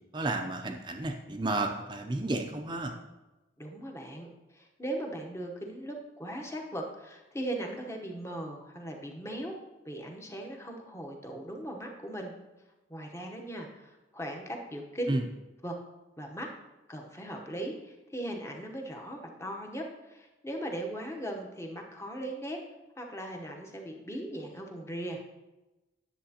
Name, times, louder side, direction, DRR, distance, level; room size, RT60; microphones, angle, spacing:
voice 1, 0.1-2.9 15.1-15.2, right 2 dB, 25° right, 3 dB, 0.5 m, -32 dB
voice 2, 3.6-9.6 9.8-12.3 12.9-15.2 15.6-15.8 16.2-16.5 16.9-22.6 23.0-25.2, right 1 dB, 15° left, 1 dB, 0.9 m, -38 dB
10.0 x 7.3 x 2.8 m, 1.1 s
head